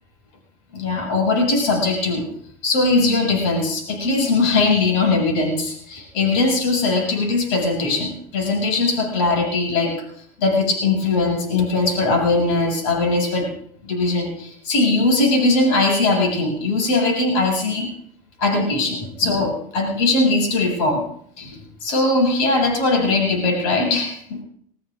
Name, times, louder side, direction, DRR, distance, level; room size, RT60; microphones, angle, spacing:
voice 1, 0.7-2.2 2.6-10.0 10.4-13.5 13.8-17.9 18.4-21.1 21.4-24.4, left 3 dB, 75° left, 0 dB, 6.9 m, -20 dB
21.5 x 21.0 x 2.6 m, 0.65 s
supercardioid pair, 110°, 18 cm